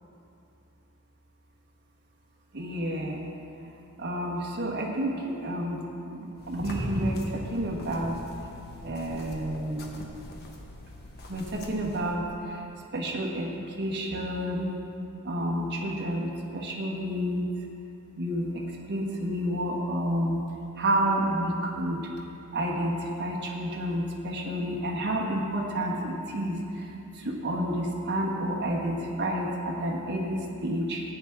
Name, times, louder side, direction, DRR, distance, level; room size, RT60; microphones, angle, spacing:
voice 1, 2.5-3.3 4.0-5.8 6.1-8.2 8.8-10.1 11.3-12.2 12.9-14.7 15.2-17.5 18.2-18.6 18.9-20.4 20.8-22.0 22.5-26.6 27.2-31.0, right 1 dB, 50° right, -2 dB, 1.4 m, -29 dB
sound 1, 6.3-12.2, left 2 dB, 50° left, 1.2 m, -44 dB
15.0 x 9.1 x 3.6 m, 2.8 s
head